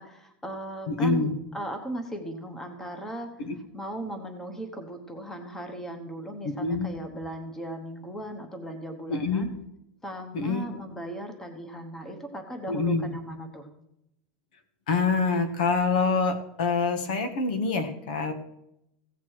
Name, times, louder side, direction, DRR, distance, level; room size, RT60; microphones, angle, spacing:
voice 1, 0.0-1.3 1.5-3.4 3.7-9.5 10.0-13.7, equal, 10° left, 7 dB, 1.1 m, -37 dB
voice 2, 0.9-1.3 3.4-3.5 6.6-6.9 9.1-9.5 10.3-10.7 12.7-13.1 14.9-18.3, left 4 dB, 80° left, 9 dB, 1.5 m, -26 dB
15.5 x 8.3 x 4.7 m, 0.83 s
supercardioid pair, 175°, 4 cm